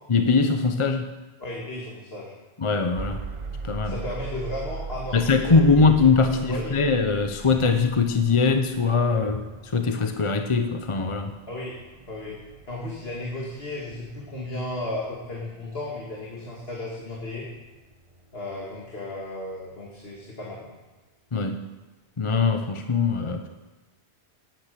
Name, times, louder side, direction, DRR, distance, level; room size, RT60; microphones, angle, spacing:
voice 1, 0.1-1.1 2.6-3.2 3.6-3.9 5.1-11.3 21.3-21.6 22.2-23.5, left 4 dB, 30° left, 7 dB, 0.8 m, -22 dB
voice 2, 1.4-2.3 3.8-5.9 6.3-6.8 11.5-11.8 12.1-12.4 12.7-17.5 18.3-20.7, left 1 dB, 60° left, -3 dB, 2.6 m, -34 dB
sound 1, 3.0-18.9, right 4 dB, 35° right, 0.7 m, -41 dB
18.5 x 9.4 x 6.8 m, 1.2 s
omnidirectional pair, 1.1 m